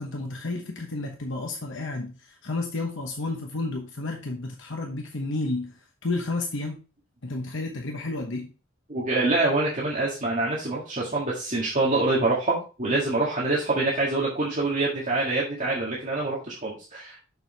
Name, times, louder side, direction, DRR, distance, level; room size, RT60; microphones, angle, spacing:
voice 1, 0.0-6.8 7.2-8.5, left 2 dB, 65° left, 2 dB, 1.0 m, -31 dB
voice 2, 8.9-17.2, right 2 dB, 40° right, -5 dB, 1.8 m, -25 dB
6.8 x 6.3 x 3.4 m, 0.33 s
head